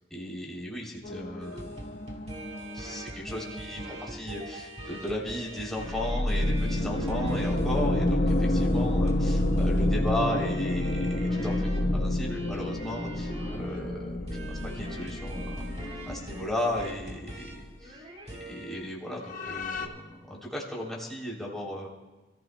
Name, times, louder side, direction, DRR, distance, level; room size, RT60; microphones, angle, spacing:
voice 1, 0.1-1.9 2.7-15.6 16.1-18.0 18.3-21.9, left 1 dB, ahead, -4 dB, 3.1 m, -35 dB
sound 1, 1.0-3.8 5.8-17.2 17.5-17.6 19.3-19.9, left 1 dB, 45° left, 1.0 m, -29 dB
sound 2, 1.4-18.9 19.3-19.6, right 1 dB, 35° right, 2.1 m, -43 dB
28.0 x 14.5 x 2.2 m, 1.2 s
head